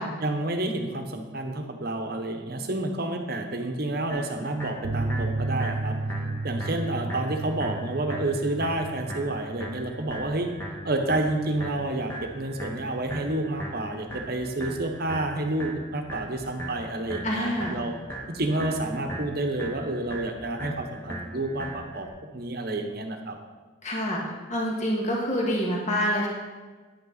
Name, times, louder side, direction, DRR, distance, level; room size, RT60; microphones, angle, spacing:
voice 1, 0.2-6.0 6.4-10.5 10.8-17.9 18.3-23.4, right 2 dB, 50° right, 5 dB, 1.1 m, -29 dB
sound 1, 4.1-22.1, right 1 dB, 10° left, 1.4 m, -39 dB
sound 2, 4.8-12.0 12.2-12.3 12.6-12.7, right 2 dB, 80° right, 0.6 m, -34 dB
voice 2, 17.2-17.8 23.8-24.2 24.5-26.3, equal, 35° left, -2 dB, 1.7 m, -26 dB
10.0 x 8.6 x 4.0 m, 1.3 s
head